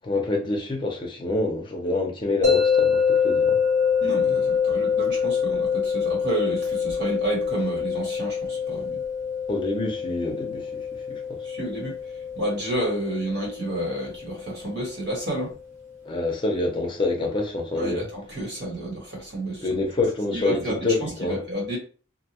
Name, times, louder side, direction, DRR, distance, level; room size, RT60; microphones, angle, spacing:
voice 1, 0.0-3.6 9.5-11.4 16.1-18.0 19.6-21.4, left 2 dB, 25° left, 0.6 m, -27 dB
sound 1, 2.4-15.5, left 6 dB, 40° right, 1.1 m, -26 dB
voice 2, 4.0-9.0 11.4-15.5 17.8-19.8 20.3-21.8, right 1 dB, 55° right, 1.3 m, -30 dB
2.7 x 2.2 x 2.9 m
head